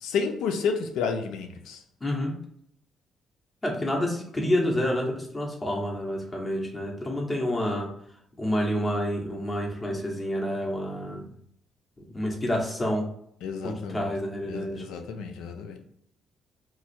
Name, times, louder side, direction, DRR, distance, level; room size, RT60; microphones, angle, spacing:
voice 1, 0.0-1.8 13.4-14.1 14.5-15.8, left 5 dB, 90° left, 0.4 m, -31 dB
voice 2, 2.0-2.3 3.6-7.9 8.4-11.3 12.1-13.1 13.6-14.8, left 1 dB, 20° left, 1.0 m, -28 dB
3.1 x 2.3 x 4.2 m
cardioid pair, 90°, 0 cm